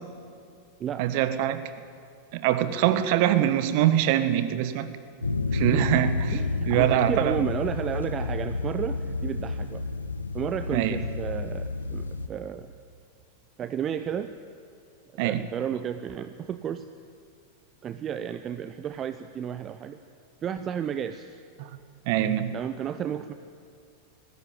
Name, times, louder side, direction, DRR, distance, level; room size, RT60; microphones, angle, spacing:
voice 1, 1.0-1.6 2.3-4.9 5.5-6.4 6.7-7.3 10.7-11.0 15.2-15.4 21.6-21.7 22.1-22.5, right 12 dB, 45° right, 12 dB, 1.4 m, -24 dB
sound 1, 5.2-12.3, left 3 dB, 80° left, 1.1 m, -30 dB
voice 2, 5.2-5.9 6.3-9.8 10.3-12.7 13.6-14.3 15.1-16.9 17.8-20.0 20.4-21.4 22.5-23.3, right 8 dB, 25° right, 11 dB, 0.7 m, -32 dB
20.0 x 15.0 x 10.0 m, 2.4 s
figure-of-eight pair, 90°, 0 cm